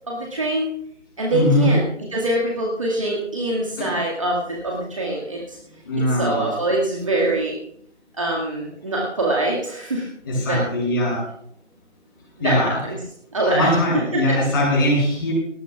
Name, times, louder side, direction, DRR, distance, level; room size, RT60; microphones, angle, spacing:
voice 1, 0.1-0.7 1.2-5.6 6.0-7.6 8.1-10.1 10.5-10.6 12.4-13.0 13.3-13.7 14.1-14.4, right 2 dB, 25° right, -3 dB, 2.0 m, -24 dB
voice 2, 1.3-1.7 3.8-3.9 5.8-6.5 10.2-11.3 12.4-12.8 13.4-15.3, left 1 dB, 20° left, -4 dB, 6.7 m, -21 dB
19.5 x 18.5 x 2.4 m, 0.69 s
figure-of-eight pair, 170°, 36 cm